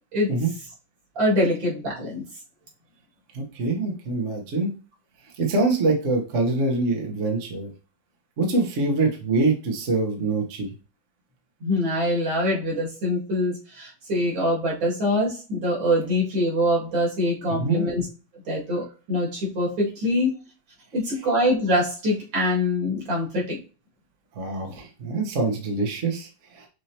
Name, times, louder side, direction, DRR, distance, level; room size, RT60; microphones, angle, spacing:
voice 1, 1.2-2.2 11.6-18.0 18.5-20.3 20.9-23.6, left 1 dB, 85° right, -4 dB, 3.0 m, -24 dB
voice 2, 3.3-4.7 5.4-7.7 8.4-10.7 17.5-17.8 24.3-26.7, right 3 dB, 45° right, 1 dB, 1.2 m, -24 dB
6.3 x 2.7 x 2.9 m, 0.33 s
omnidirectional pair, 2.1 m